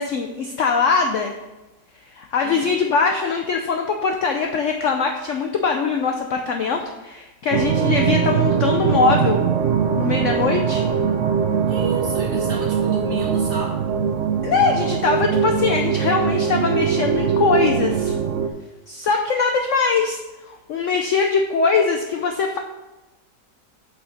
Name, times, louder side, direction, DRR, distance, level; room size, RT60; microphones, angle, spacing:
voice 1, 0.0-1.4 2.0-9.4 10.0-10.9 14.4-18.2 18.9-22.6, left 5 dB, 70° left, 3 dB, 0.7 m, -22 dB
voice 2, 2.4-2.8 11.7-13.8, right 3 dB, 40° right, -2 dB, 1.7 m, -32 dB
sound 1, 7.5-18.5, right 7 dB, 75° right, 0.6 m, -21 dB
8.2 x 5.6 x 4.1 m, 1.1 s
omnidirectional pair, 1.9 m